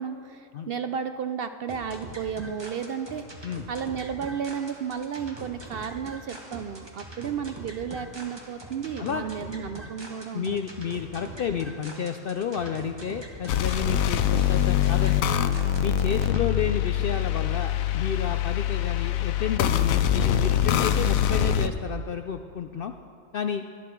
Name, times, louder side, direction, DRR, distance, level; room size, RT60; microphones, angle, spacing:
voice 1, 0.0-10.6, right 7 dB, 60° right, 9 dB, 0.6 m, -33 dB
sound 1, 1.7-16.4, right 1 dB, 20° right, 1.5 m, -43 dB
voice 2, 10.3-15.4 15.8-22.9 23.3-23.6, left 7 dB, 65° left, 7 dB, 0.5 m, -31 dB
sound 2, 13.5-21.7, left 10 dB, 90° left, 1.0 m, -24 dB
18.5 x 11.5 x 4.5 m, 2.4 s
omnidirectional pair, 1.4 m